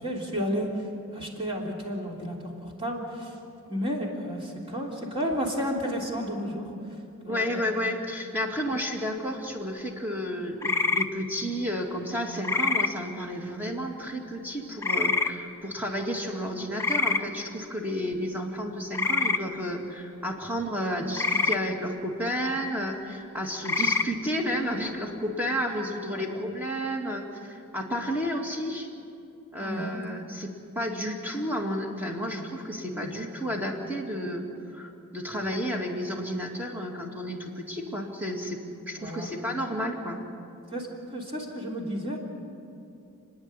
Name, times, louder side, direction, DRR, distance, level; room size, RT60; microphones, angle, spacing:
voice 1, 0.0-3.3 3.7-6.7 7.2-7.6 8.7-8.8 26.1-26.4 29.6-30.0 39.0-39.3 40.7-42.2, equal, 25° right, -2 dB, 3.3 m, -32 dB
voice 2, 7.3-28.9 29.5-34.5 34.7-40.2, equal, 10° right, 1 dB, 2.2 m, -31 dB
sound 1, 10.6-11.1 12.4-12.9 14.8-15.3 16.8-17.2 18.9-19.4 21.2-21.6 23.6-24.1, left 4 dB, 10° left, 0.6 m, -25 dB
30.0 x 10.5 x 9.7 m, 2.7 s
head